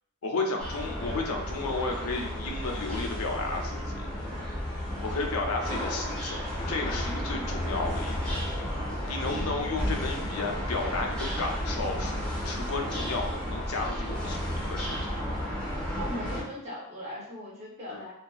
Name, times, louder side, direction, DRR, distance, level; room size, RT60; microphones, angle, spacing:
voice 1, 0.2-4.1 5.0-8.4 9.0-15.0 17.9-18.0, left 3 dB, 85° left, 2 dB, 0.5 m, -33 dB
sound 1, 0.6-16.4, equal, 5° left, 0.6 m, -32 dB
voice 2, 9.2-9.7 16.0-18.1, left 1 dB, 30° right, -6 dB, 0.7 m, -39 dB
2.5 x 2.2 x 2.4 m, 0.73 s
head